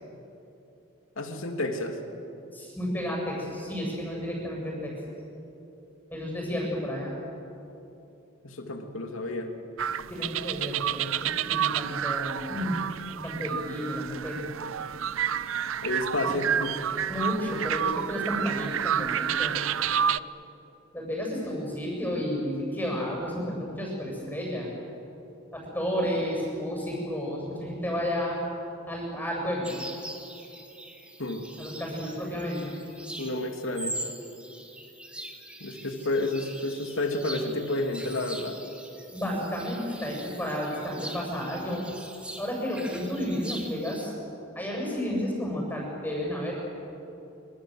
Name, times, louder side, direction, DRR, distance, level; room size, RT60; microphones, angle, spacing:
voice 1, 1.2-2.0 8.4-9.5 15.8-16.7 31.2-31.4 33.2-34.0 35.6-38.6, left 2 dB, 85° left, 4 dB, 2.9 m, -30 dB
voice 2, 2.5-4.9 6.1-7.1 10.1-12.8 13.2-14.6 17.1-19.6 20.9-24.7 25.5-28.4 28.9-29.8 31.6-32.8 39.1-41.9 42.4-44.1 44.5-46.5, equal, 10° left, -2 dB, 7.4 m, -32 dB
sound 1, 9.8-20.2, right 9 dB, 85° right, 0.6 m, -29 dB
sound 2, 29.6-44.1, right 1 dB, 5° right, 2.1 m, -42 dB
26.0 x 25.5 x 8.0 m, 2.9 s
head